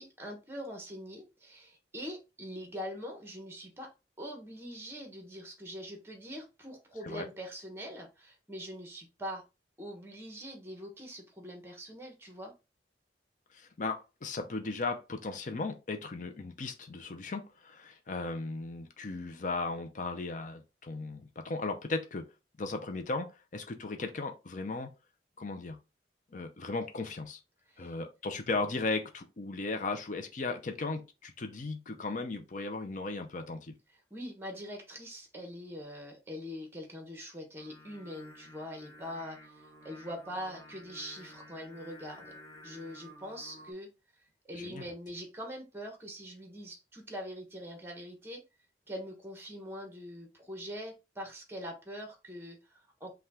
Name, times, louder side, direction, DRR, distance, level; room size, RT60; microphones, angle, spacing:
voice 1, 0.0-3.9 4.2-9.4 9.8-12.5 27.7-27.9 34.1-42.4 42.6-43.9 44.5-48.4 48.9-53.1, equal, 15° right, 1.2 m, -43 dB
voice 2, 13.5-22.3 22.6-24.9 25.4-25.8 26.3-27.4 27.8-33.7 44.5-44.8, left 3 dB, 45° left, 0.6 m, -36 dB
Singing, 37.6-43.7, left 1 dB, 20° left, 0.9 m, -53 dB
5.5 x 2.4 x 3.5 m
head